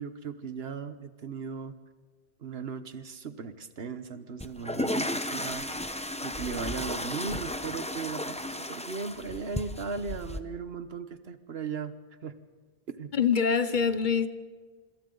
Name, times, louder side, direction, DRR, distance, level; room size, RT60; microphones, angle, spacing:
voice 1, 0.0-1.7 2.4-5.7 6.2-11.9 12.2-12.3 12.9-13.1, right 5 dB, 75° right, 1.3 m, -37 dB
sound 1, 4.4-10.4, left 1 dB, 5° left, 0.7 m, -34 dB
voice 2, 13.1-14.3, left 6 dB, 50° left, 1.0 m, -24 dB
26.5 x 26.0 x 3.9 m
omnidirectional pair, 1.0 m